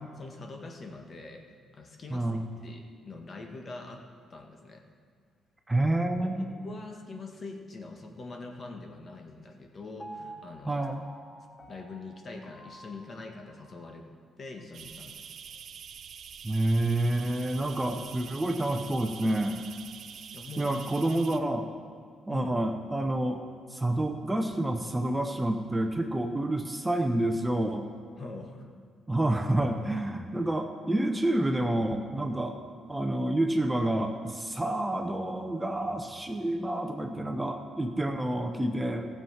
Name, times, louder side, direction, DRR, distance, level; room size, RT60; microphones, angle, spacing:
voice 1, 0.2-1.4 1.7-2.3 2.6-4.0 4.3-4.9 6.2-10.8 11.7-14.0 14.4-15.3 20.3-20.7 22.3-22.5 28.2-28.7, left 3 dB, 40° left, 2 dB, 1.6 m, -43 dB
voice 2, 2.1-2.5 5.7-6.5 10.7-11.0 16.4-19.6 20.6-21.7 22.3-23.4 23.7-27.9 29.1-32.6 32.9-39.1, right 1 dB, 15° right, 4 dB, 0.8 m, -28 dB
Piano, 10.0-14.1 14.6-14.7, right 1 dB, 10° left, 1.1 m, -49 dB
sound 1, 14.7-21.4, right 7 dB, 60° right, 0.6 m, -45 dB
15.5 x 7.3 x 5.7 m, 2.1 s
cardioid pair, 90°, 0 cm